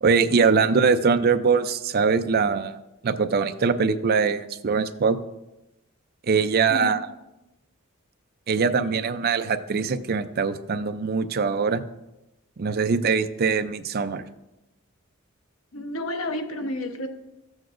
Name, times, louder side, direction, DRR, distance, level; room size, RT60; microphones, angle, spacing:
voice 1, 0.0-2.8 3.0-5.2 6.2-7.1 8.5-11.8 12.6-14.2, right 5 dB, 50° right, 10 dB, 0.5 m, -22 dB
voice 2, 8.7-9.0 15.7-17.1, left 1 dB, 85° left, 6 dB, 0.9 m, -31 dB
13.0 x 8.0 x 2.6 m, 0.93 s
head